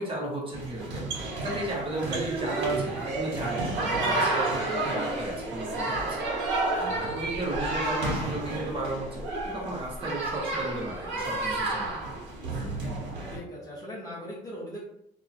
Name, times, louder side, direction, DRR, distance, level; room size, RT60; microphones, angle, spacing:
voice 1, 0.0-6.2 6.7-12.2, right 2 dB, 30° right, -3 dB, 1.1 m, -34 dB
sound 1, 0.5-13.4, right 2 dB, 80° right, 1.4 m, -31 dB
voice 2, 7.2-7.6 13.3-14.8, equal, 20° left, -8 dB, 1.0 m, -40 dB
2.8 x 2.6 x 2.5 m, 0.75 s
cardioid pair, 110°, 17 cm